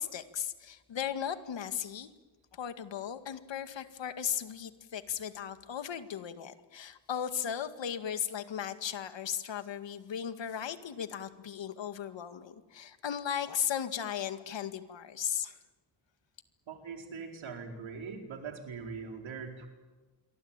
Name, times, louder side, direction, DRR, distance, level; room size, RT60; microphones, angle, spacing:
voice 1, 0.0-2.1 2.5-15.6, left 9 dB, 70° left, 9 dB, 2.1 m, -36 dB
voice 2, 16.7-19.7, right 5 dB, 80° right, 3 dB, 4.7 m, -42 dB
27.5 x 24.0 x 9.0 m, 1.3 s
cardioid pair, 115°, 46 cm